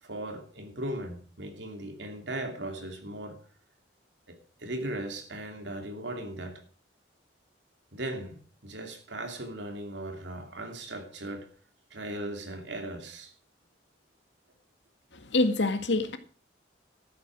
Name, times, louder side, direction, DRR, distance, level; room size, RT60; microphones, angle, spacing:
voice 1, 0.0-3.4 4.3-6.6 7.9-11.5 11.9-13.3, right 1 dB, 90° right, 2.8 m, -38 dB
voice 2, 15.1-16.2, left 2 dB, 90° left, 1.8 m, -26 dB
13.0 x 8.7 x 6.2 m
head